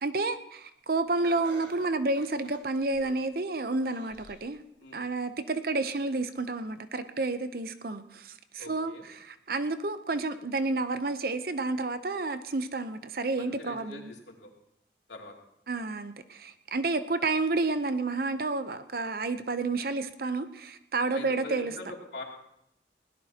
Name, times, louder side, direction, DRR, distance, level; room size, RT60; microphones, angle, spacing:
voice 1, 0.0-4.6 4.9-14.1 15.7-21.7, right 3 dB, 55° right, 10 dB, 0.7 m, -30 dB
Laughter, 1.2-3.3 3.8-4.5 4.9-5.0 6.0-6.1, right 1 dB, 85° right, 4.1 m, -49 dB
voice 2, 8.6-9.0 13.4-14.5 15.1-15.3 21.1-22.2, left 2 dB, 75° left, -1 dB, 2.9 m, -43 dB
20.5 x 17.0 x 2.9 m, 0.76 s
head